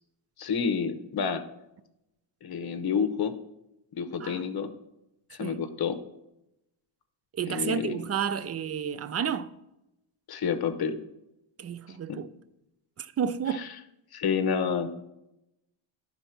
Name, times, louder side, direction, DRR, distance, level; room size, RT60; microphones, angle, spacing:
voice 1, 0.4-1.4 2.4-3.3 4.0-4.7 5.3-6.0 7.5-8.1 10.3-11.0 12.1-12.2 13.5-13.7 14.1-14.9, left 6 dB, 50° left, 0.9 m, -29 dB
voice 2, 7.4-9.5 11.6-12.3 13.0-13.7, right 8 dB, 35° right, 0.4 m, -31 dB
10.5 x 4.2 x 5.8 m
cardioid pair, 115°, 48 cm